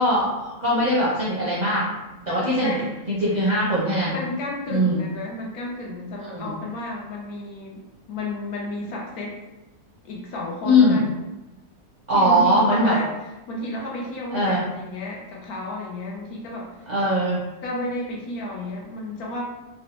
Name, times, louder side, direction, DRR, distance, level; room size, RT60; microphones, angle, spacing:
voice 1, 0.0-1.8 2.2-2.8 3.1-4.2 4.7-5.0 6.2-6.5 10.6-11.0 12.1-13.0 14.3-14.6 16.9-17.4, equal, 45° right, -8 dB, 0.5 m, -21 dB
voice 2, 2.6-2.9 4.1-7.8 8.1-9.4 10.0-11.1 12.1-13.1 13.5-16.8 17.6-19.4, left 1 dB, 75° left, -2 dB, 1.2 m, -32 dB
3.4 x 2.0 x 2.9 m, 1.0 s
omnidirectional pair, 1.6 m